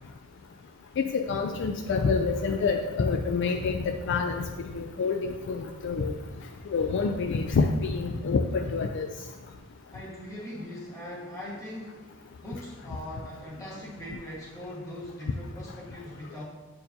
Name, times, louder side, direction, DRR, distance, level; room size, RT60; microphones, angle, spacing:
voice 1, 1.0-6.1 6.7-9.1, left 4 dB, 60° left, 4 dB, 0.4 m, -27 dB
voice 2, 9.9-12.0 12.4-16.5, left 1 dB, 15° left, -7 dB, 1.9 m, -40 dB
8.6 x 4.5 x 2.7 m, 1.3 s
head